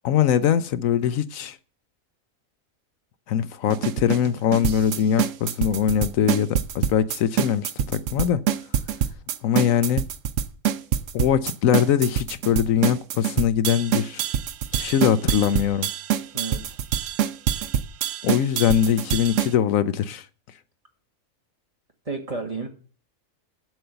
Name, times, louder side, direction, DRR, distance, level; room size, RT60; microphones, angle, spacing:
voice 1, 0.0-1.6 3.3-8.4 9.4-10.0 11.1-14.2 14.7-15.9 18.2-20.3, left 9 dB, 75° left, 1.0 m, -22 dB
sound 1, 3.7-19.5, right 9 dB, 65° right, 1.0 m, -25 dB
voice 2, 16.3-16.8 22.1-22.7, right 3 dB, 25° right, 1.9 m, -31 dB
8.2 x 7.8 x 6.8 m
omnidirectional pair, 1.4 m